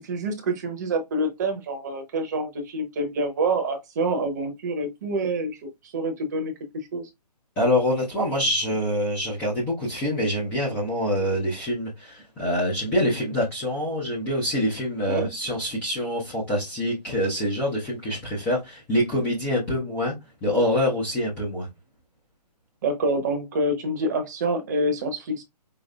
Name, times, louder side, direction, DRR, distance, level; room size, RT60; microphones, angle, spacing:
voice 1, 0.0-6.5 6.9-7.1 15.0-15.3 22.8-25.4, right 2 dB, 25° right, 0.8 m, -27 dB
voice 2, 7.6-20.1 20.4-21.7, left 1 dB, 5° left, 0.5 m, -25 dB
5.2 x 3.0 x 2.2 m
figure-of-eight pair, 135°, 21 cm